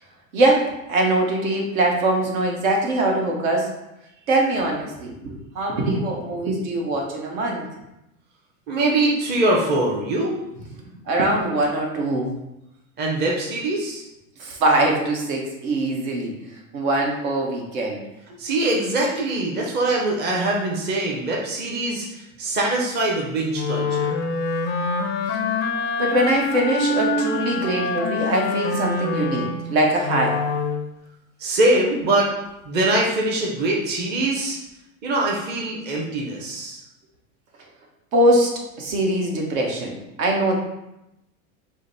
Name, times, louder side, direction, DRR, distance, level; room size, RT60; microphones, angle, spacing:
voice 1, 0.3-3.7 4.3-7.7 11.1-12.3 14.4-18.0 25.3-25.4 26.0-30.4 38.1-38.5 38.8-40.6, right 1 dB, 70° right, 0 dB, 1.3 m, -22 dB
voice 2, 8.7-10.3 13.0-14.0 18.4-24.2 31.4-32.3 32.7-34.6 35.0-36.8, right 2 dB, 25° right, -2 dB, 0.7 m, -23 dB
Wind instrument woodwind instrument, 23.5-30.9, left 3 dB, 25° left, 0.4 m, -25 dB
5.0 x 2.2 x 4.0 m, 0.89 s
supercardioid pair, 115°, 42 cm